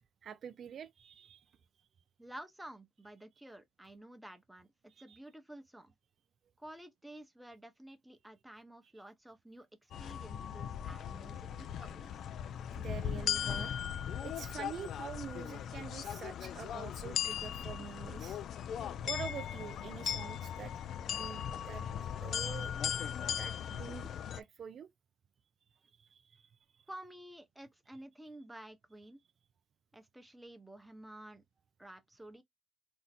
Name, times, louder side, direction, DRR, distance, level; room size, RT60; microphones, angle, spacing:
voice 1, 0.2-1.5 1.8-1.9 4.9-5.2 12.8-13.7 14.2-18.4 19.0-20.8 21.1-21.9 22.2-22.7 23.4-24.9 26.0-26.9, right 7 dB, 60° right, 0.3 m, -46 dB
voice 2, 2.2-4.7 5.0-5.9 6.6-12.3 26.9-29.2 29.9-31.4 31.8-32.4, right 1 dB, 5° right, 0.7 m, -51 dB
sound 1, 9.9-24.4, left 9 dB, 70° left, 0.3 m, -38 dB
Mallet percussion, 19.1-21.2, left 3 dB, 35° left, 1.0 m, -60 dB
2.6 x 2.1 x 4.0 m
cardioid pair, 90°, 0 cm